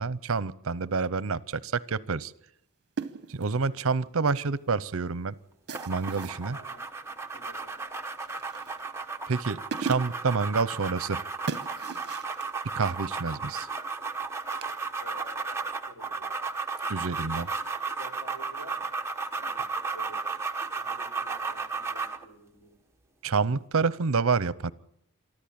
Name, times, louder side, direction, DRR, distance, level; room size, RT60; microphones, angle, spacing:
voice 1, 0.0-2.3 3.3-5.3 5.9-6.6 9.3-11.2 12.7-13.7 16.9-17.5 23.2-24.7, right 4 dB, 65° right, 19 dB, 0.7 m, -28 dB
sound 1, 3.0-3.6 5.7-6.4 8.2-8.8 9.4-9.5 9.7-10.3 11.5-12.5 14.5-14.7, right 5 dB, 50° right, 1.0 m, -37 dB
sound 2, 5.7-22.2, right 4 dB, 10° right, 1.0 m, -34 dB
voice 2, 6.5-6.8 7.3-7.8 13.3-13.5 15.0-16.5 16.8-17.4 18.0-18.9 19.4-20.2 20.7-22.8, left 1 dB, 90° left, 5 dB, 4.2 m, -51 dB
24.0 x 13.5 x 8.7 m, 0.76 s
head